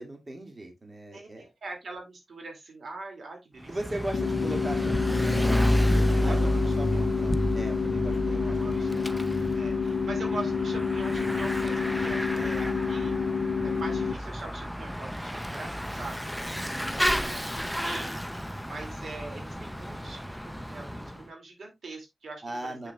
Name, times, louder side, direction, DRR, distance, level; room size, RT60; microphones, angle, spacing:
voice 1, 0.0-1.5 3.7-6.5 6.8-9.1 16.7-17.4 22.4-22.9, right 1 dB, 35° right, 3 dB, 2.2 m, -39 dB
voice 2, 1.1-3.8 6.1-7.1 8.3-9.2 9.5-13.1 13.6-16.2 16.9-17.5 17.8-18.3 18.6-22.7, right 3 dB, 75° right, 3 dB, 2.5 m, -42 dB
Bicycle / Mechanisms, 3.6-21.2, equal, ahead, 0.5 m, -30 dB
sound 1, 4.1-14.1, left 5 dB, 85° left, 0.5 m, -29 dB
8.0 x 6.8 x 2.3 m, 0.20 s
cardioid pair, 65°, 0 cm